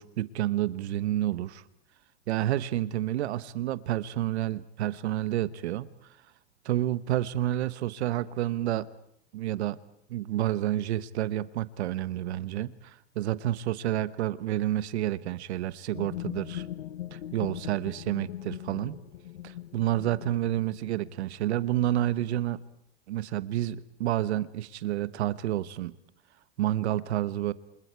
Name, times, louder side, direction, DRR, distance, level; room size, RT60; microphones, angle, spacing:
voice 1, 0.0-1.6 2.3-5.9 6.6-8.9 9.3-9.8 10.1-16.6 17.1-19.0 19.4-22.6 23.1-25.9 26.6-27.5, right 13 dB, 80° right, 15 dB, 1.3 m, -29 dB
sound 1, 15.9-21.6, left 12 dB, 90° left, 1.1 m, -40 dB
29.0 x 27.0 x 4.7 m, 0.75 s
hypercardioid pair, 120°, 33 cm